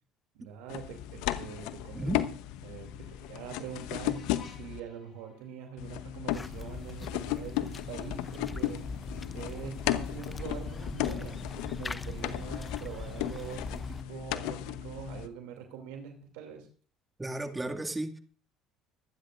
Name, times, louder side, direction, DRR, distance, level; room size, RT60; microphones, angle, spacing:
voice 1, 0.3-2.1 2.6-4.2 4.5-8.8 9.3-16.7, right 8 dB, 75° right, 4 dB, 2.7 m, -44 dB
sound 1, 0.7-4.8 5.8-15.3, left 13 dB, 75° left, 0.9 m, -35 dB
sound 2, 2.3-7.2, left 6 dB, 45° left, 6.1 m, -59 dB
sound 3, 6.3-14.0, left 3 dB, 25° left, 0.7 m, -41 dB
voice 2, 17.2-18.2, right 2 dB, 15° right, 4 dB, 2.2 m, -34 dB
24.5 x 10.5 x 2.6 m, 0.42 s
hypercardioid pair, 70°, 0 cm